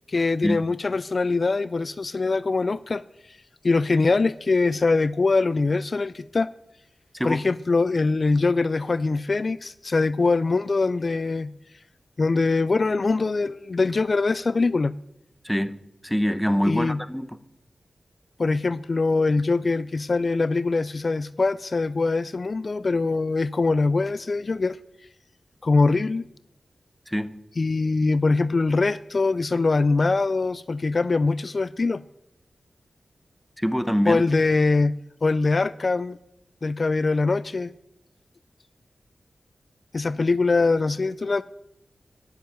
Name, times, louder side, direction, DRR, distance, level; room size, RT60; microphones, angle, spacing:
voice 1, 0.1-3.4 3.6-6.5 7.2-11.5 12.2-14.9 16.6-17.0 18.4-24.8 25.6-26.3 27.6-32.0 34.1-35.0 35.2-36.2 36.6-37.7 39.9-41.4, left 3 dB, 50° left, 16 dB, 0.3 m, -23 dB
voice 2, 15.4-15.8 16.0-17.4 27.1-27.3 33.6-34.2, equal, ahead, 12 dB, 0.8 m, -24 dB
10.5 x 6.9 x 9.1 m, 0.83 s
wide cardioid pair, 65°, 0 cm